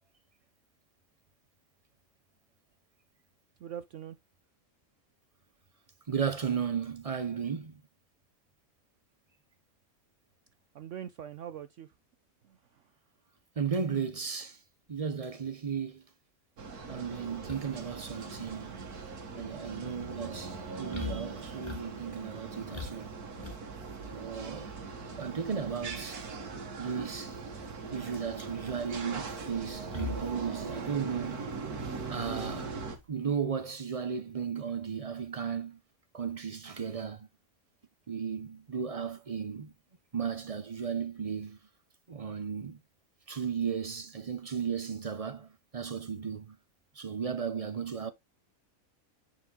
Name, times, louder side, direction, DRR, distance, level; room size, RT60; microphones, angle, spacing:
voice 1, 3.6-4.2 10.7-11.9 12.4-12.8, right 9 dB, 65° right, 0.8 m, -43 dB
voice 2, 6.1-7.7 13.6-14.6 14.9-16.0 16.9-18.9 19.3-23.1 24.1-24.7 25.2-26.2 26.8-27.4 27.9-31.4 32.1-32.7 33.1-35.8 36.1-37.3 38.1-39.7 40.1-41.6 42.1-42.8 43.3-46.6 47.0-48.1, right 6 dB, 50° right, 0.4 m, -35 dB
sound 1, 16.6-33.0, right 4 dB, 80° right, 2.1 m, -41 dB
sound 2, 17.5-33.0, left 4 dB, 15° left, 2.7 m, -45 dB
9.9 x 4.8 x 3.7 m
omnidirectional pair, 1.6 m